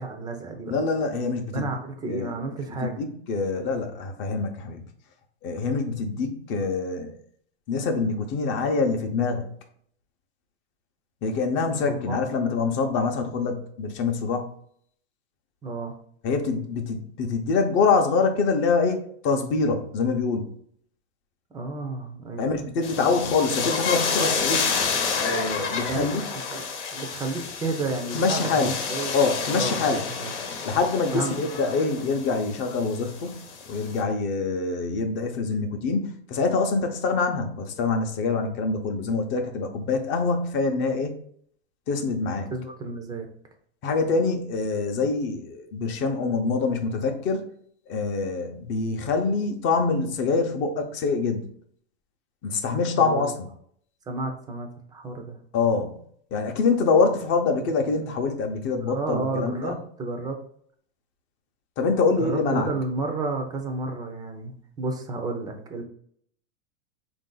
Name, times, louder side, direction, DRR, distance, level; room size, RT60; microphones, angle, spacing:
voice 1, 0.0-0.8 1.5-3.0 11.9-12.2 15.6-15.9 21.5-22.6 25.9-26.1 26.5-26.6 26.9-29.1 29.5-30.3 31.1-31.3 31.6-31.8 42.5-43.3 52.9-53.3 54.1-55.4 58.9-60.4 62.2-65.8, right 3 dB, 10° right, 4 dB, 0.4 m, -31 dB
voice 2, 0.7-1.7 2.0-2.3 2.8-4.8 5.4-7.2 7.7-9.5 11.2-14.5 16.2-20.5 22.4-24.7 25.2-26.2 28.1-28.7 29.1-30.0 30.6-33.4 33.7-41.1 41.9-42.5 43.8-47.4 47.9-51.5 52.4-53.5 55.5-56.0 56.3-59.8 61.8-62.7, left 4 dB, 35° left, 5 dB, 0.6 m, -25 dB
sound 1, 22.8-34.0, left 5 dB, 90° left, 1.0 m, -30 dB
3.8 x 2.6 x 3.8 m, 0.62 s
supercardioid pair, 135°, 34 cm